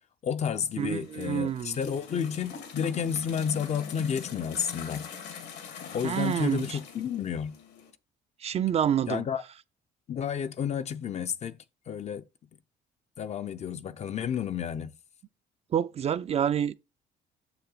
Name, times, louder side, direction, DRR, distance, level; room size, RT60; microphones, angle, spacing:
voice 1, 0.2-5.1 5.9-7.6 9.1-9.4 10.1-11.6 11.9-12.3 13.2-14.9, left 7 dB, 40° left, 0.6 m, -31 dB
sound 1, 0.8-7.9, left 7 dB, 80° left, 2.3 m, -43 dB
voice 2, 0.8-1.7 6.0-6.8 8.4-9.2 15.7-16.8, right 9 dB, 40° right, 0.4 m, -27 dB
6.6 x 5.7 x 3.9 m
cardioid pair, 110°, 17 cm